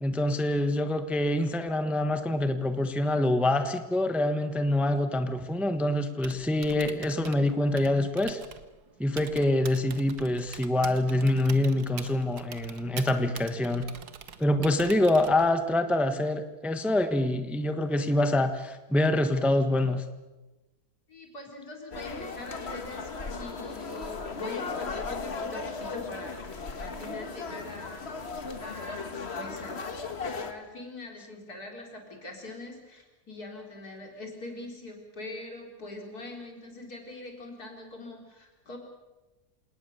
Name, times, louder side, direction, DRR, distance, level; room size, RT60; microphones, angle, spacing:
voice 1, 0.0-8.4 9.0-13.9 14.4-20.0, left 1 dB, ahead, 8 dB, 1.1 m, -26 dB
Typing, 6.1-15.7, right 7 dB, 70° right, 1.7 m, -45 dB
voice 2, 21.1-28.1 28.6-29.8 30.2-38.8, left 2 dB, 65° left, 1 dB, 4.5 m, -43 dB
sound 1, 21.9-30.5, left 4 dB, 40° left, 1.7 m, -36 dB
28.0 x 18.5 x 6.7 m, 1.1 s
omnidirectional pair, 1.7 m